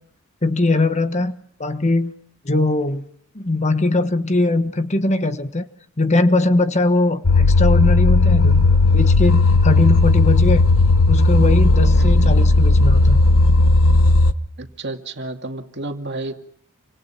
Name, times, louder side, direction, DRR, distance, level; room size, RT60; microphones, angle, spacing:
voice 1, 0.4-1.3 1.6-2.1 2.4-3.0 3.3-5.7 6.0-8.6 8.9-10.6 11.1-13.2, left 2 dB, 35° left, 10 dB, 1.3 m, -20 dB
sound 1, 7.2-14.3, left 2 dB, 70° left, 1.2 m, -14 dB
voice 2, 11.9-12.3 14.6-16.3, right 2 dB, 55° right, 5 dB, 2.5 m, -31 dB
29.0 x 26.0 x 5.9 m, 0.63 s
head